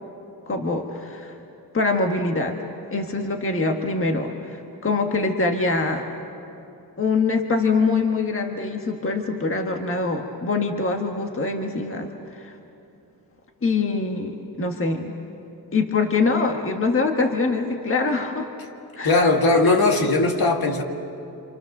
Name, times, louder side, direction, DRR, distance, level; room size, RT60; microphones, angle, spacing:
voice 1, 0.5-1.4 1.7-2.6 2.9-6.1 7.0-12.5 13.6-15.1 15.7-18.5 19.0-19.2, left 3 dB, 35° left, 3 dB, 1.4 m, -24 dB
voice 2, 19.0-20.8, left 3 dB, 70° left, 2 dB, 2.1 m, -19 dB
27.5 x 27.0 x 6.6 m, 2.8 s
wide cardioid pair, 165°, 38 cm